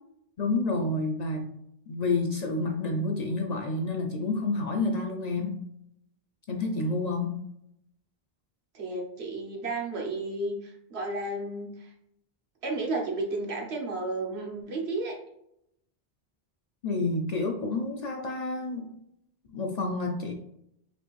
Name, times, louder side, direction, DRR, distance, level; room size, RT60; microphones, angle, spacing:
voice 1, 0.4-1.5 1.9-5.6 6.5-7.4 16.8-18.9 19.5-20.3, left 2 dB, 55° left, 2 dB, 0.5 m, -29 dB
voice 2, 8.7-11.9 12.6-15.2, right 2 dB, 85° right, 1 dB, 1.2 m, -32 dB
5.1 x 2.5 x 3.1 m, 0.78 s
omnidirectional pair, 1.1 m